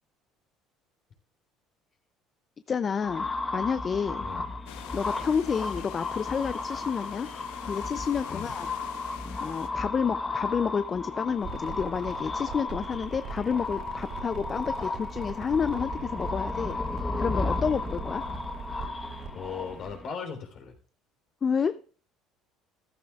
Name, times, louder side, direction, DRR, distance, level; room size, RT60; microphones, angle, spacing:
voice 1, 2.7-4.2 4.9-7.3 7.7-8.7 9.4-16.8 17.2-18.2 21.4-21.8, left 6 dB, 35° left, 13 dB, 0.4 m, -29 dB
sound 1, 3.0-20.1, left 3 dB, 20° left, 1.1 m, -34 dB
voice 2, 4.2-4.5 8.3-8.5 17.6-17.8 19.3-20.8, left 6 dB, 55° left, 3 dB, 3.5 m, -38 dB
sound 2, 4.7-9.7, left 12 dB, 90° left, 0.9 m, -46 dB
sound 3, 11.4-20.0, right 6 dB, 60° right, 3.8 m, -41 dB
14.0 x 12.5 x 2.4 m, 0.40 s
supercardioid pair, 95°, 0 cm